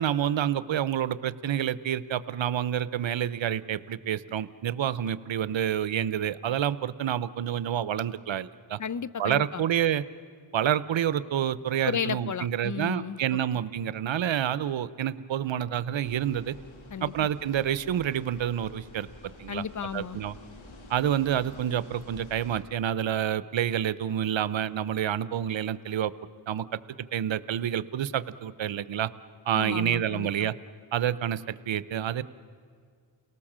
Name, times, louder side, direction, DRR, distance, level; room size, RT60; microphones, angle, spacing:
voice 1, 0.0-8.8 9.2-10.0 10.5-16.5 17.0-19.1 19.4-19.6 19.9-20.3 20.9-26.1 26.5-26.6 27.1-29.1 29.5-30.5 30.9-32.2, right 10 dB, 75° right, 16 dB, 0.8 m, -28 dB
voice 2, 8.8-9.6 11.8-13.2 16.9-17.3 19.5-20.2 29.5-30.5, left 7 dB, 40° left, 19 dB, 0.6 m, -33 dB
sound 1, 16.0-22.6, left 2 dB, 85° left, 2.5 m, -49 dB
29.5 x 18.5 x 7.4 m, 2.1 s
cardioid pair, 55°, 46 cm